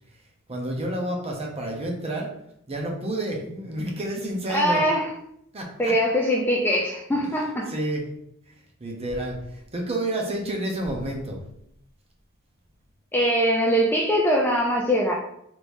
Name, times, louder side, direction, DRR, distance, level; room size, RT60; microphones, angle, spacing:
voice 1, 0.5-2.3 2.7-4.8 5.5-5.9 7.7-8.2 8.5-11.4, right 1 dB, 30° right, 0 dB, 0.7 m, -30 dB
voice 2, 4.5-5.1 5.8-7.7 13.1-15.1, equal, 10° left, -2 dB, 0.3 m, -22 dB
3.4 x 3.1 x 2.6 m, 0.76 s
head